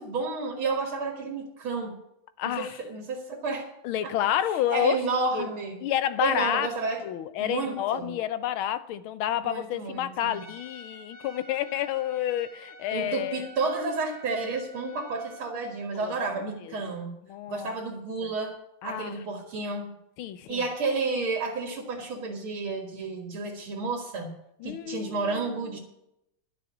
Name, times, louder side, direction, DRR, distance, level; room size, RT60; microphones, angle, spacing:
voice 1, 0.0-2.0 2.4-3.7 4.0-4.1 4.7-5.8 6.2-7.0 7.4-8.1 9.4-10.4 12.9-17.1 17.5-18.6 18.8-20.0 20.5-24.4 24.6-25.8, right 3 dB, 75° right, 2.6 m, -31 dB
voice 2, 2.4-2.8 3.8-5.0 5.3-5.5 5.8-6.7 7.0-13.5 14.8-15.0 15.9-16.1 16.7-16.8 17.3-17.7 18.2-18.3 18.8-19.2 20.2-20.7 24.6-25.5, left 11 dB, 80° left, 1.6 m, -29 dB
Trumpet, 10.2-15.5, right 1 dB, 20° right, 1.9 m, -49 dB
11.5 x 6.9 x 8.4 m
omnidirectional pair, 2.3 m